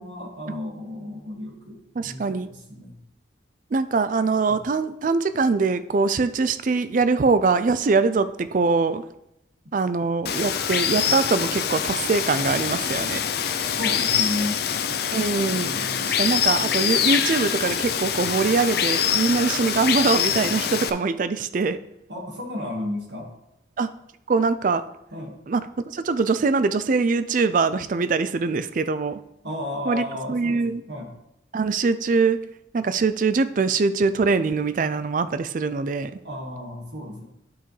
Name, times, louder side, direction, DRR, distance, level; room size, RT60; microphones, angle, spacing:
voice 1, 0.0-1.8 2.0-3.0 13.8-14.6 15.5-16.1 22.1-23.3 25.1-25.3 29.4-31.1 36.2-37.2, left 1 dB, 70° right, -1 dB, 1.8 m, -33 dB
voice 2, 2.0-2.5 3.7-9.0 9.7-13.2 15.1-15.7 16.0-21.8 23.8-23.9 24.3-24.8 25.5-25.6 25.9-29.2 29.9-30.8 31.5-32.4 32.7-36.1, right 4 dB, 45° right, 12 dB, 0.4 m, -23 dB
Water, 10.3-20.9, left 8 dB, 55° left, 0.4 m, -24 dB
9.8 x 5.6 x 3.3 m, 0.84 s
head